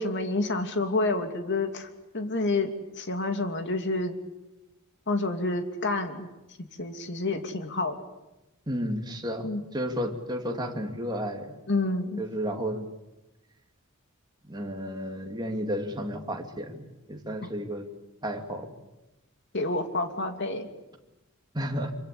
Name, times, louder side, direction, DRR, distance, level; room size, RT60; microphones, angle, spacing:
voice 1, 0.0-1.9 2.1-4.1 5.1-6.3 6.6-7.9 9.4-9.6 11.7-12.2 19.5-20.7, left 2 dB, 55° left, 6 dB, 2.7 m, -28 dB
voice 2, 8.7-11.5 12.2-12.9 14.4-17.8 18.2-18.7 21.5-21.9, equal, 20° right, 2 dB, 2.8 m, -32 dB
25.5 x 24.0 x 8.6 m, 0.98 s
head